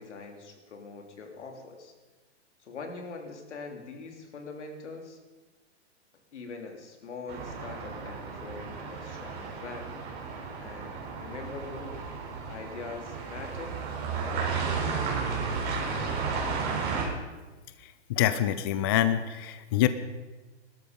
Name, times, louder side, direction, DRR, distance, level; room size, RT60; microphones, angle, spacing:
voice 1, 0.0-1.9 2.6-5.2 6.3-10.0 10.6-11.9 12.4-13.8 14.3-16.4, left 4 dB, 85° left, 3 dB, 3.3 m, -43 dB
sound 1, 7.3-17.1, right 5 dB, 30° right, 3.7 m, -33 dB
voice 2, 18.1-19.9, left 12 dB, 20° left, 12 dB, 0.4 m, -25 dB
18.0 x 12.5 x 5.2 m, 1.2 s
hypercardioid pair, 150°, 34 cm